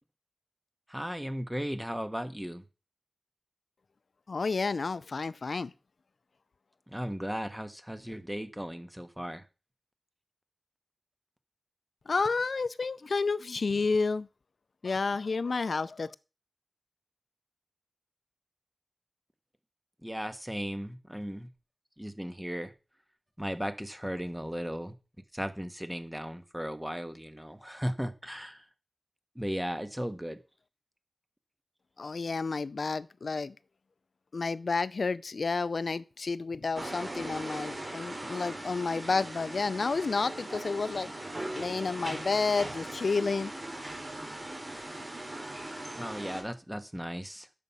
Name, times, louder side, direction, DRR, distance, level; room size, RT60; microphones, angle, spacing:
voice 1, 0.9-2.6 6.9-9.4 20.0-21.5 22.0-22.7 23.4-24.9 25.3-28.6 29.3-30.4 46.0-47.5, equal, 5° right, 1.5 m, -36 dB
voice 2, 4.3-5.7 12.1-14.3 14.8-16.1 32.0-33.5 34.3-41.1 41.5-43.5, left 4 dB, 80° left, 0.5 m, -30 dB
sound 1, 36.8-46.4, right 1 dB, 45° right, 4.8 m, -39 dB
10.5 x 7.4 x 5.6 m
wide cardioid pair, 55°, 0 cm